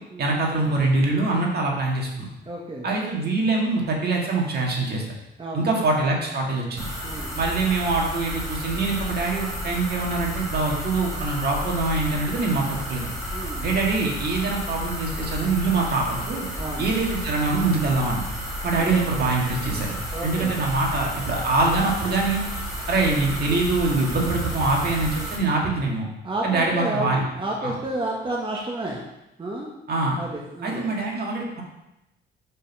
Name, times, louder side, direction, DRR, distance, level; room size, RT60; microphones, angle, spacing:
voice 1, 0.2-2.3 2.8-5.0 5.5-6.9 7.4-13.1 13.6-16.5 16.8-18.2 18.6-22.4 22.9-26.1 26.4-27.2 27.6-27.7 29.9-30.2 30.6-31.6, right 3 dB, 55° right, -1 dB, 1.9 m, -24 dB
voice 2, 2.4-2.9 5.4-5.7 7.0-7.4 13.3-13.7 16.6-16.9 20.1-20.5 26.2-29.0 29.4-29.7 30.1-30.9, right 1 dB, 25° right, -2 dB, 1.3 m, -31 dB
sound 1, 6.8-25.4, equal, ahead, 2.5 m, -32 dB
5.4 x 5.4 x 5.4 m, 0.91 s
cardioid pair, 90°, 20 cm